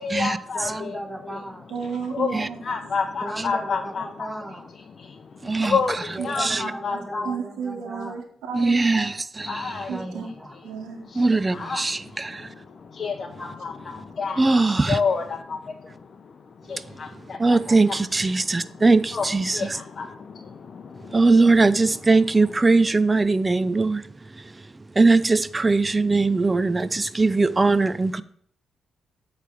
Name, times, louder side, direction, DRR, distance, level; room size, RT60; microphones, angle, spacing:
voice 1, 0.0-1.0 2.1-4.3 5.0-7.3 9.5-9.9 11.0-11.2 11.5-14.5 14.9-18.0 19.1-21.2, left 5 dB, 50° left, 0.6 m, -30 dB
voice 2, 0.5-1.7 3.2-4.8 6.1-8.2 9.9-10.6, right 1 dB, 10° right, 1.0 m, -36 dB
voice 3, 1.7-2.6 6.2-6.3 6.6-9.1 9.9-10.3 10.6-11.1 13.4-13.5, right 6 dB, 90° right, 1.3 m, -33 dB
voice 4, 5.4-5.8 6.4-6.6 8.5-9.9 11.1-12.5 14.4-15.0 16.7-16.9 17.4-19.8 21.1-24.6 24.9-28.2, right 3 dB, 25° right, 0.4 m, -21 dB
8.1 x 3.3 x 6.1 m
cardioid pair, 65°, 0 cm